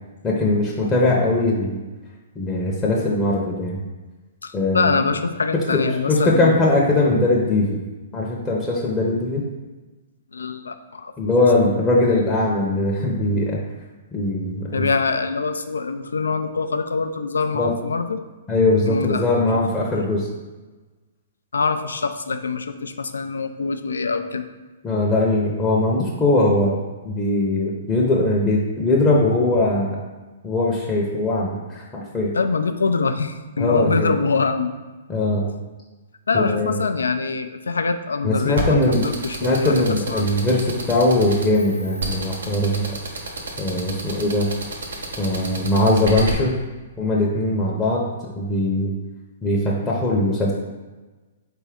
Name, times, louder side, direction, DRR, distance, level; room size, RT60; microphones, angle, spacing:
voice 1, 0.2-1.8 2.4-3.8 4.5-5.0 6.1-7.8 8.1-9.4 11.2-13.6 14.1-14.8 17.5-17.7 18.5-20.3 24.8-26.8 27.0-30.0 30.4-32.3 33.6-34.1 35.1-35.5 36.3-36.8 38.2-39.0 39.4-42.9 43.6-44.5 45.2-46.5 47.0-48.9 49.4-50.5, left 2 dB, 15° left, -4 dB, 0.6 m, -20 dB
voice 2, 4.4-6.6 10.3-11.1 14.7-18.2 18.8-19.5 21.5-24.4 32.3-34.7 36.3-40.3, left 4 dB, 90° left, 9 dB, 0.3 m, -24 dB
sound 1, 38.6-46.3, right 2 dB, 85° right, 0.9 m, -29 dB
4.1 x 3.4 x 3.6 m, 1.2 s
hypercardioid pair, 130°, 0 cm